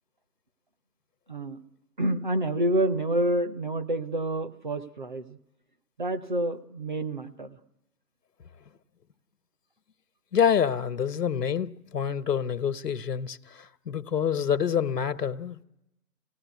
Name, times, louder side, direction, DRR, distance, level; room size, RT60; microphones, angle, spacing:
voice 1, 1.3-1.6 2.0-5.4 6.0-7.6, right 1 dB, 30° right, 0.8 m, -28 dB
voice 2, 10.3-15.6, left 8 dB, 80° left, 1.2 m, -27 dB
24.5 x 17.5 x 9.4 m
hypercardioid pair, 165°, 47 cm